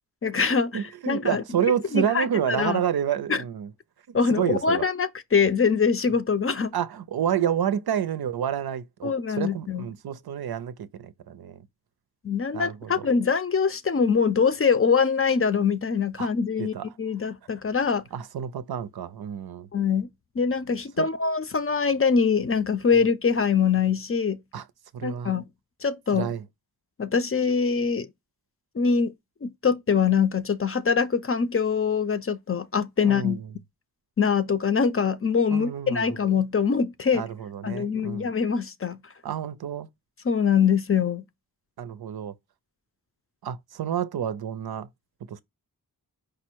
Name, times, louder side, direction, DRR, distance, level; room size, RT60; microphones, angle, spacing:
voice 1, 0.2-1.4 1.9-2.8 3.3-3.4 4.1-6.7 9.0-9.9 12.2-18.0 19.7-20.1 20.4-24.4 25.0-25.5 25.8-26.3 27.0-28.1 28.8-29.1 29.4-33.4 34.2-37.2 37.6-39.0 40.2-41.3, left 6 dB, 35° left, 0.5 m, -23 dB
voice 2, 0.7-3.7 4.3-4.8 6.7-11.7 12.5-13.1 16.2-16.3 16.6-16.9 18.1-19.7 21.0-21.1 24.5-24.7 24.9-25.3 26.1-26.4 33.0-33.5 35.5-36.1 37.1-38.3 39.2-39.9 41.8-42.3 43.4-44.9 45.3-45.4, right 9 dB, 85° right, 0.5 m, -29 dB
5.0 x 2.1 x 4.4 m
wide cardioid pair, 105°, 37 cm